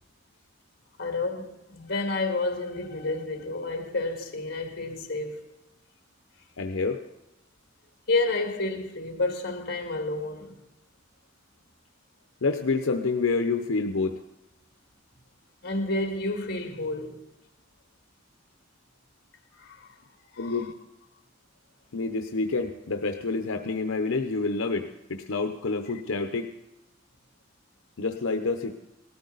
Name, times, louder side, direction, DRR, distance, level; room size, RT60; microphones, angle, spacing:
voice 1, 1.0-5.4 8.1-10.5 15.6-17.2 19.6-19.9 20.4-20.6, left 2 dB, 50° left, 2.0 m, -30 dB
voice 2, 6.6-7.0 12.4-14.2 20.4-20.7 21.9-26.5 28.0-28.7, left 3 dB, 85° left, 0.8 m, -28 dB
18.0 x 13.5 x 4.0 m
head